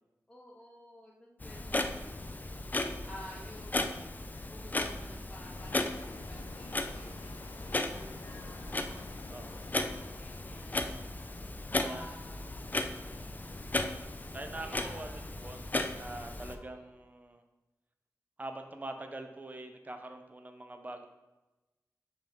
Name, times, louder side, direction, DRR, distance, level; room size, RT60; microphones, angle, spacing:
voice 1, 0.3-2.4 3.0-4.0 4.5-9.1 9.5-10.9 11.7-12.5 13.0-13.6 14.5-15.3 16.5-17.1, left 1 dB, 10° left, -6 dB, 0.9 m, -52 dB
Clock, 1.4-16.6, left 2 dB, 25° left, 0.4 m, -36 dB
sound 1, 5.5-11.5, left 4 dB, 80° left, 0.5 m, -53 dB
voice 2, 9.3-9.6 11.8-12.1 14.3-15.7 16.0-17.4 18.4-21.1, right 2 dB, 25° right, 6 dB, 0.6 m, -44 dB
5.2 x 3.8 x 5.2 m, 1.0 s
wide cardioid pair, 105°, 6 cm